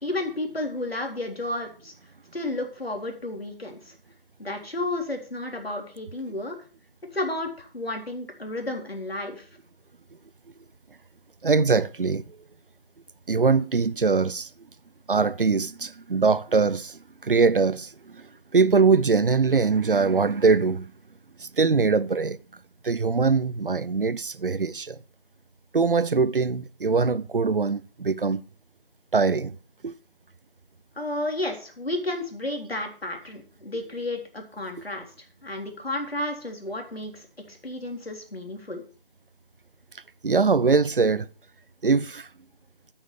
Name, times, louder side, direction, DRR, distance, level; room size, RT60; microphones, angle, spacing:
voice 1, 0.0-1.9 2.3-3.9 4.4-6.6 7.1-9.5 31.0-35.1 35.4-38.8, left 1 dB, 90° left, 3.9 m, -32 dB
voice 2, 11.4-12.2 13.3-14.5 15.1-18.2 18.5-20.9 21.4-22.4 22.8-25.0 25.7-28.4 29.1-29.6 29.8-30.0 40.2-41.3 41.8-42.3, right 4 dB, 65° right, 0.7 m, -22 dB
8.9 x 8.8 x 6.7 m
figure-of-eight pair, 165°, 29 cm